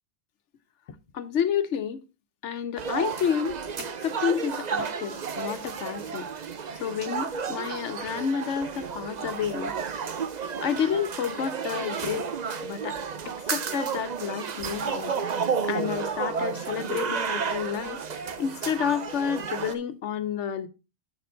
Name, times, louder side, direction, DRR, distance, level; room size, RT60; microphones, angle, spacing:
voice 1, 1.1-2.0 2.4-6.3 6.8-9.7 10.6-12.3 12.6-13.0 13.2-15.2 15.6-18.0 18.4-20.7, left 8 dB, 90° left, 1.2 m, -30 dB
sound 1, 2.8-19.8, right 6 dB, 45° right, 0.7 m, -32 dB
7.8 x 6.8 x 3.8 m
omnidirectional pair, 1.2 m